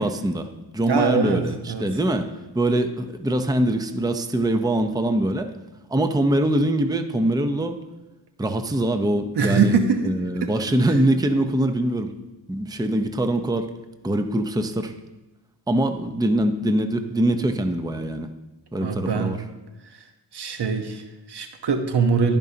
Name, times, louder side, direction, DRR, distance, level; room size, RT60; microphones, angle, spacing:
voice 1, 0.0-5.5 5.9-7.8 8.4-9.8 10.0-12.1 12.5-13.7 14.0-14.9 15.7-18.3 18.7-19.4, right 1 dB, 10° right, 7 dB, 0.8 m, -23 dB
voice 2, 0.9-2.0 9.3-10.0 10.4-10.5 18.8-19.4 19.8-20.1 20.3-22.4, right 4 dB, 55° right, 7 dB, 1.2 m, -23 dB
15.5 x 5.3 x 2.9 m, 1.1 s
supercardioid pair, 45°, 47 cm